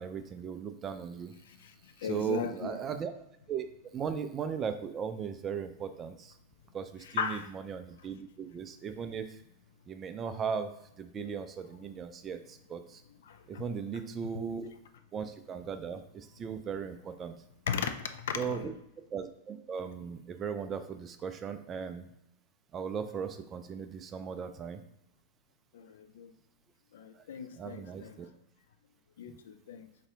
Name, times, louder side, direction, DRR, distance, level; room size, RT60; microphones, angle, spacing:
voice 1, 0.0-1.3 2.0-3.1 3.5-3.7 3.9-6.3 6.7-9.4 9.9-10.7 11.0-13.0 13.5-14.7 15.1-17.4 18.4-18.7 19.1-22.1 22.7-24.8 27.6-28.3 29.3-29.4, right 7 dB, 25° right, 9 dB, 0.3 m, -37 dB
voice 2, 2.0-2.8 7.2-7.5 13.5-13.6 13.9-14.0 17.7-17.9 18.3-18.7 25.7-25.9 26.2-26.3 26.9-28.2 29.2-29.9, left 7 dB, 60° left, 8 dB, 0.3 m, -36 dB
3.9 x 2.7 x 3.4 m, 0.80 s
figure-of-eight pair, 90°, 0 cm